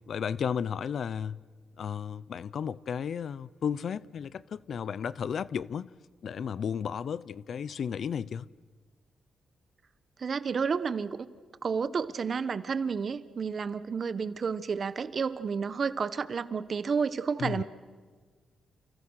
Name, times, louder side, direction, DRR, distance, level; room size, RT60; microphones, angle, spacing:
voice 1, 0.1-1.4 1.8-5.9 6.2-8.5 17.4-17.6, left 7 dB, 65° left, 0.7 m, -33 dB
voice 2, 10.2-11.3 11.6-17.6, right 5 dB, 55° right, 1.3 m, -31 dB
29.5 x 28.5 x 6.6 m
cardioid pair, 65°, 0 cm